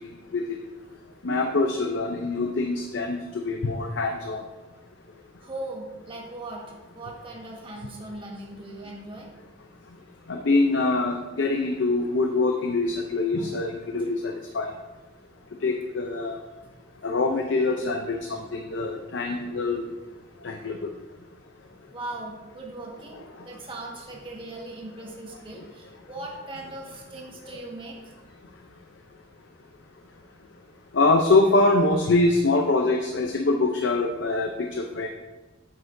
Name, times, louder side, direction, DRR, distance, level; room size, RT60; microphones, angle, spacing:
voice 1, 1.2-4.4 10.3-14.7 15.6-16.4 17.0-19.8 20.4-20.9 30.9-35.1, left 3 dB, 85° left, 3 dB, 0.6 m, -24 dB
voice 2, 5.4-6.7 6.9-9.3 21.9-28.2, right 2 dB, 30° right, -2 dB, 1.5 m, -39 dB
8.5 x 7.9 x 2.7 m, 1.2 s
head